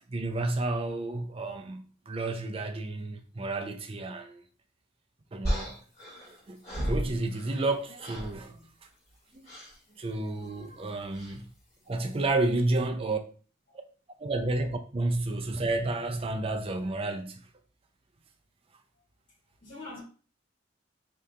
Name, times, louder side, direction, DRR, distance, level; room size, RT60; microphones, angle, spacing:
voice 1, 0.1-4.4 5.3-5.7 6.5-8.7 9.3-9.4 10.0-11.5 11.9-13.2 14.2-17.5, right 2 dB, 30° right, 0.5 m, -31 dB
sound 1, 5.4-7.7 8.0-8.4 9.4-9.8 11.1-11.4, equal, 35° left, 2.1 m, -34 dB
voice 2, 10.4-11.1 11.8-12.0 18.9-19.0 19.6-20.0, left 2 dB, 55° left, 1.7 m, -48 dB
3.3 x 2.9 x 3.6 m
head